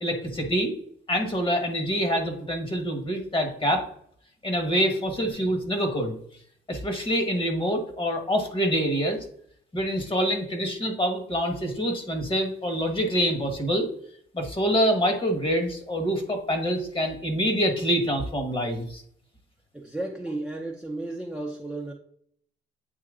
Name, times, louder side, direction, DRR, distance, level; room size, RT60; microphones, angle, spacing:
voice 1, 0.0-0.7 1.1-3.8 4.4-6.2 6.7-9.2 9.7-13.9 14.3-19.0, equal, 25° left, 4 dB, 1.5 m, -26 dB
voice 2, 19.7-21.9, right 2 dB, 5° right, 1 dB, 0.8 m, -33 dB
8.6 x 2.9 x 3.8 m, 0.65 s
cardioid pair, 90°, 20 cm